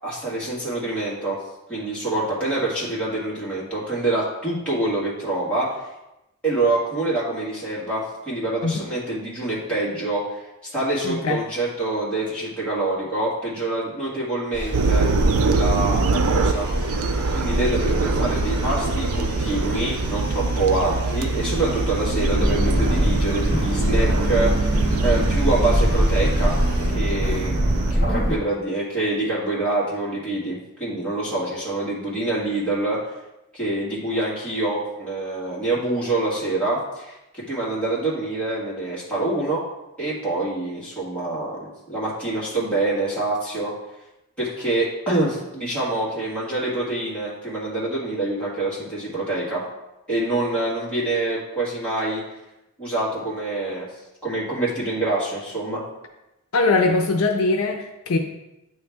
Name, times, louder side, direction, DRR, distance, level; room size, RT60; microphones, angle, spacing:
voice 1, 0.0-1.4 1.7-5.7 6.4-15.1 15.5-16.7 17.4-24.8 25.0-26.6 26.9-27.6 27.9-33.0 33.5-39.6 40.0-43.7 44.4-49.6 50.1-52.2 52.8-53.9 54.2-55.8, right 2 dB, 5° left, -9 dB, 1.9 m, -26 dB
voice 2, 11.0-11.4 56.5-58.2, left 3 dB, 70° left, 3 dB, 0.5 m, -21 dB
sound 1, 14.5-26.9, equal, 20° right, 1.5 m, -30 dB
sound 2, 14.7-27.9, right 3 dB, 70° right, 0.4 m, -24 dB
sound 3, 22.4-28.4, equal, 45° left, 1.5 m, -22 dB
8.8 x 3.1 x 3.5 m, 0.93 s
head